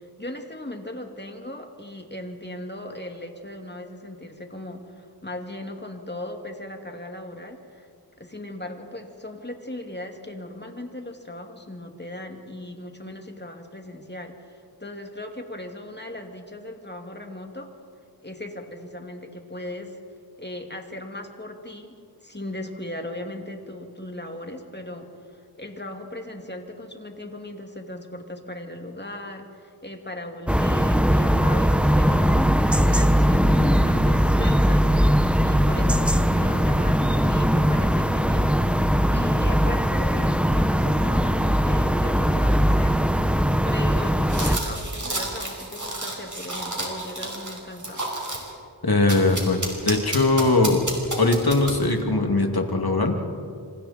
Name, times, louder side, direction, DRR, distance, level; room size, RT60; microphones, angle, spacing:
voice 1, 0.2-7.9 8.2-17.7 18.2-20.0 20.4-32.5 32.8-34.9 35.4-43.0 43.6-48.1, left 1 dB, 25° left, 3 dB, 2.6 m, -38 dB
sound 1, 30.5-44.6, equal, 5° right, 1.2 m, -20 dB
sound 2, 44.3-48.5 49.1-52.0, right 1 dB, 45° right, 5.5 m, -31 dB
voice 2, 48.8-50.8 51.2-53.2, left 2 dB, 60° left, 3 dB, 2.7 m, -21 dB
27.0 x 26.5 x 4.4 m, 2.2 s
wide cardioid pair, 40°, 41 cm